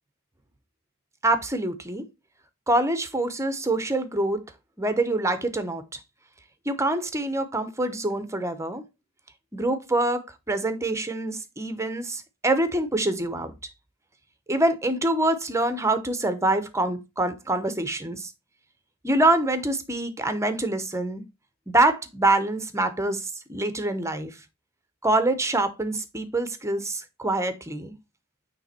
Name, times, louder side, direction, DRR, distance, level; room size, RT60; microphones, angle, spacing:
voice 1, 1.2-2.0 2.7-4.4 4.8-6.0 6.6-8.8 9.5-13.5 14.5-18.3 19.0-21.2 21.7-24.4 25.0-27.9, right 2 dB, 15° right, 0.9 m, -25 dB
8.9 x 3.4 x 4.3 m
head